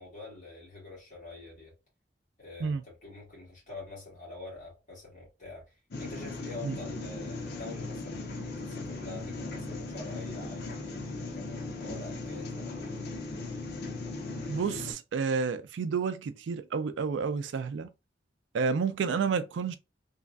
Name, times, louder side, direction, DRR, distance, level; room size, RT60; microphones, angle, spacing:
voice 1, 0.0-1.7 2.4-12.9, left 3 dB, 45° left, 1.6 m, -46 dB
sound 1, 5.9-14.9, left 2 dB, 65° left, 0.7 m, -38 dB
voice 2, 14.5-17.9 18.5-19.8, right 5 dB, 85° right, 0.3 m, -30 dB
3.1 x 2.4 x 2.3 m
head